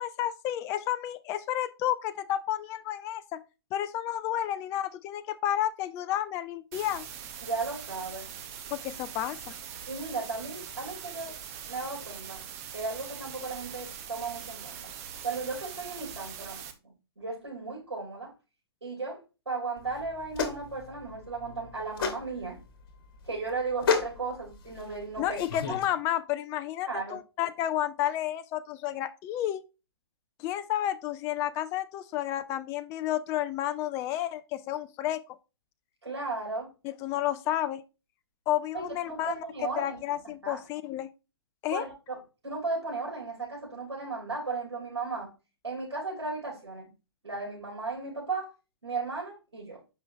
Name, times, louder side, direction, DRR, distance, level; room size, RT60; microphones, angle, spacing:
voice 1, 0.0-3.4 3.7-7.1 8.7-9.5 25.2-29.6 30.4-35.2 36.8-37.8 38.5-39.4 39.8-41.1 41.6-41.8, left 12 dB, 20° left, 0.3 m, -31 dB
sound 1, 6.7-16.7, right 8 dB, 35° right, 1.0 m, -42 dB
voice 2, 7.4-8.3 9.9-11.4 11.7-12.4 12.7-14.9 15.2-18.3 18.8-22.6 23.2-25.4 26.8-27.2 36.0-36.7 38.7-40.0 40.4-40.6 41.7-42.2 42.4-45.3 45.6-46.9 47.2-48.5 48.8-49.8, right 3 dB, 85° right, 3.6 m, -35 dB
sound 2, 19.8-25.9, left 6 dB, 50° left, 1.7 m, -33 dB
7.6 x 5.5 x 2.7 m
hypercardioid pair, 130°, 14 cm